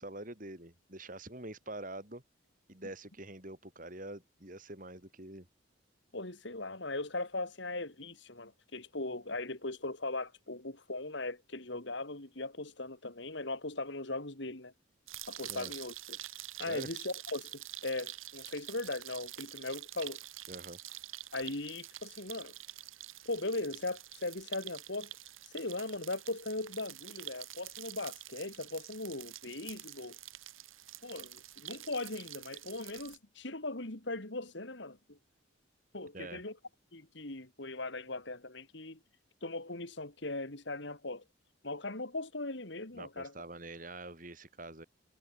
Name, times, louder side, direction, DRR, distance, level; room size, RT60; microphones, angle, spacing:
voice 1, 0.0-2.2 2.7-5.5 15.5-15.7 16.6-16.9 20.5-20.8 36.1-36.4 42.9-44.8, right 2 dB, 40° right, 4.2 m, -45 dB
voice 2, 6.1-14.7 15.3-16.2 16.6-20.2 21.3-22.5 23.3-25.1 25.5-30.2 31.0-35.2 35.9-36.6 36.9-39.0 39.4-41.2 41.6-43.3, left 2 dB, 60° left, 2.6 m, -39 dB
sound 1, 15.1-33.2, right 14 dB, 85° right, 4.2 m, -47 dB
head